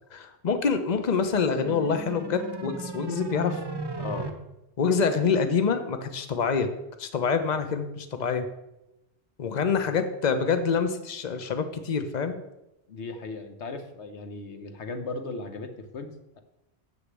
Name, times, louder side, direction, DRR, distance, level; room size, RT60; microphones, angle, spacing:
voice 1, 0.1-3.6 4.8-6.7 7.0-8.5 9.4-12.4, left 5 dB, 40° left, 8 dB, 0.9 m, -26 dB
sound 1, 1.0-4.3, right 2 dB, 25° right, 0.9 m, -36 dB
voice 2, 4.0-4.3 9.8-9.9 12.9-16.4, left 3 dB, 80° left, 7 dB, 1.3 m, -37 dB
7.2 x 6.6 x 7.5 m, 0.92 s
omnidirectional pair, 1.1 m